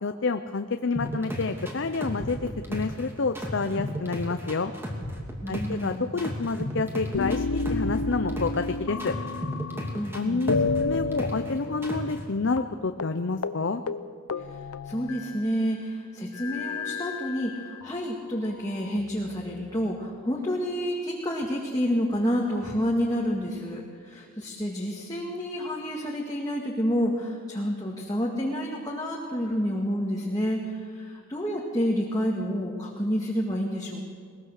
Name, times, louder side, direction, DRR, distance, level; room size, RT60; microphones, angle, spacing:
voice 1, 0.0-4.7 5.5-9.1 10.1-13.8, left 4 dB, 55° left, 8 dB, 0.7 m, -29 dB
sound 1, 1.0-3.1 3.4-5.9 6.2-8.7 9.0-11.5 11.8-12.2, equal, 10° right, 2.7 m, -33 dB
voice 2, 5.4-6.1 9.9-10.6 14.5-14.6 14.8-34.1, equal, 15° left, -3 dB, 2.0 m, -29 dB
sound 2, 7.1-10.1 10.5-12.3 12.6-12.7 13.0-13.2 13.4-13.6 13.9-15.6 16.3-17.9 18.6-19.6, left 3 dB, 90° left, 0.8 m, -31 dB
21.5 x 20.5 x 6.6 m, 2.1 s
head